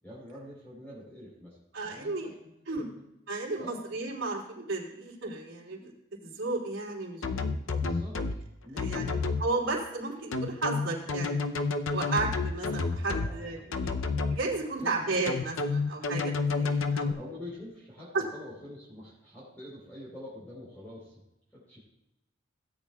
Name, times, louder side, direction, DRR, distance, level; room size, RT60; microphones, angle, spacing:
voice 1, 0.0-1.6 1.9-3.0 3.6-3.8 7.7-8.2 8.6-9.2 13.1-13.8 14.8-15.0 17.1-21.2 21.5-21.8, left 1 dB, 10° left, -7 dB, 3.7 m, -46 dB
voice 2, 1.7-2.3 2.7-2.8 3.3-7.7 8.8-11.4 11.9-13.9 14.3-17.2 18.1-18.2, right 3 dB, 80° right, -4 dB, 3.0 m, -34 dB
sound 1, 7.2-8.4 8.8-9.4 10.3-13.3 13.7-14.4 15.3-17.1, left 4 dB, 85° left, 0.6 m, -29 dB
17.0 x 8.5 x 2.3 m, 0.87 s
head